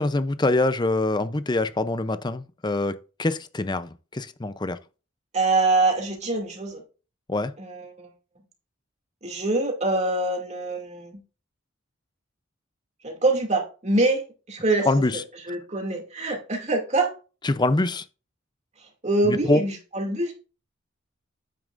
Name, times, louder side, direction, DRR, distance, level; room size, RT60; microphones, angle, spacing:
voice 1, 0.0-4.8 7.3-7.5 14.9-15.1 17.4-18.0 19.2-19.6, left 2 dB, 20° left, 0.5 m, -24 dB
voice 2, 5.3-6.8 7.6-8.1 9.2-11.2 13.0-14.2 14.5-14.9 15.4-17.1 18.8-20.3, right 2 dB, 35° right, 2.4 m, -24 dB
9.4 x 8.8 x 2.5 m
head